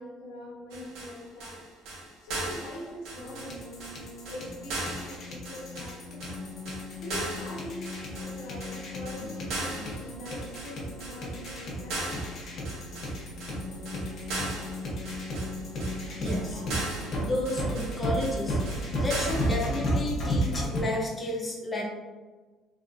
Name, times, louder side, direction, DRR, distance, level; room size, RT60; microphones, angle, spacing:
voice 1, 0.0-1.7 2.2-6.3 6.9-12.6 16.0-17.2, left 1 dB, 85° left, -2 dB, 0.6 m, -43 dB
sound 1, 0.7-19.6, right 2 dB, 85° right, 0.7 m, -38 dB
sound 2, 3.2-20.8, equal, 55° left, 0.8 m, -34 dB
voice 2, 16.2-16.6 17.2-18.6 19.0-21.8, left 1 dB, 20° left, -3 dB, 0.7 m, -31 dB
3.3 x 2.1 x 2.5 m, 1.3 s
cardioid pair, 120°, 0 cm